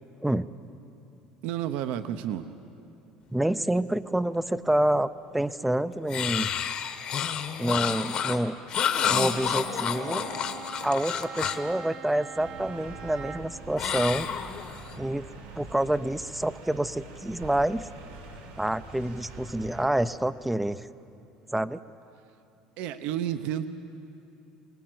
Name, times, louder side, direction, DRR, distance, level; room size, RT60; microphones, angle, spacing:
voice 1, 1.4-2.5 22.8-23.6, right 11 dB, 65° right, 10 dB, 0.8 m, -31 dB
voice 2, 3.3-6.5 7.6-8.5 9.1-10.2 10.8-14.3 15.0-15.2 15.6-17.9 18.6-20.9 21.5-21.8, right 1 dB, 5° right, 15 dB, 0.4 m, -27 dB
sound 1, 6.1-11.7 13.8-14.9, left 8 dB, 40° left, 1.1 m, -29 dB
Bowed string instrument, 9.2-13.7, right 7 dB, 45° right, 1.1 m, -42 dB
sound 2, 12.3-19.8, right 3 dB, 85° right, 3.6 m, -45 dB
24.5 x 18.5 x 7.8 m, 2.7 s
cardioid pair, 155°, 2 cm